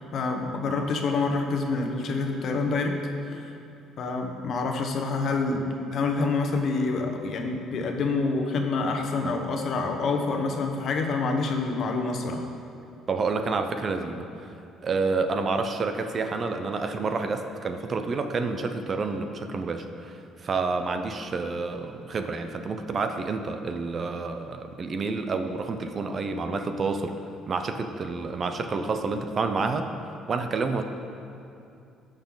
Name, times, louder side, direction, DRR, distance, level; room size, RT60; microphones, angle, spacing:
voice 1, 0.1-3.0 3.3-3.5 4.0-5.7 5.9-12.4, left 3 dB, 50° left, 3 dB, 1.1 m, -27 dB
voice 2, 13.1-14.5 14.8-27.1 27.4-29.9 30.3-30.8, right 4 dB, 35° right, 7 dB, 0.6 m, -29 dB
16.5 x 6.5 x 3.9 m, 2.6 s
cardioid pair, 145°, 0 cm